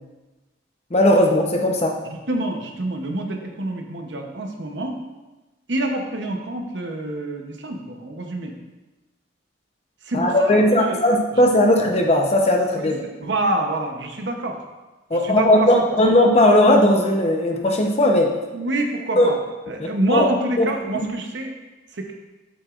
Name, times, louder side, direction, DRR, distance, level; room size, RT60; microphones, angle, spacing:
voice 1, 0.9-2.0 10.1-13.0 15.1-18.3 19.2-19.3 19.8-20.3 20.6-20.7, left 1 dB, 35° left, 1 dB, 0.8 m, -17 dB
voice 2, 2.0-5.0 5.7-8.5 10.0-11.0 11.3-11.4 12.7-12.9 13.2-14.6 15.1-15.9 18.5-19.4 19.7-21.6 21.9-22.1, right 2 dB, 65° right, 3 dB, 0.9 m, -27 dB
8.0 x 7.9 x 2.5 m, 1.1 s
head